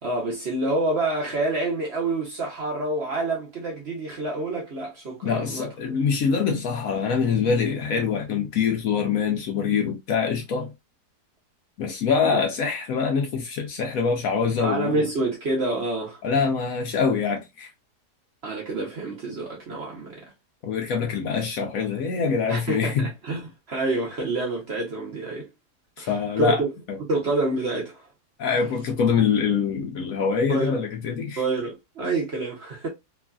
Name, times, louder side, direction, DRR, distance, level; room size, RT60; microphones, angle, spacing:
voice 1, 0.0-5.7 12.2-12.4 14.6-16.2 18.4-20.2 22.5-25.5 26.0-26.7 27.0-28.1 30.5-30.8 31.4-32.9, right 2 dB, 55° right, 0.8 m, -27 dB
voice 2, 5.2-10.7 11.8-15.1 16.2-17.7 20.6-23.1 26.0-26.6 26.9-27.0 28.4-31.4, left 6 dB, 65° left, 0.9 m, -24 dB
3.1 x 2.4 x 2.2 m
omnidirectional pair, 1.8 m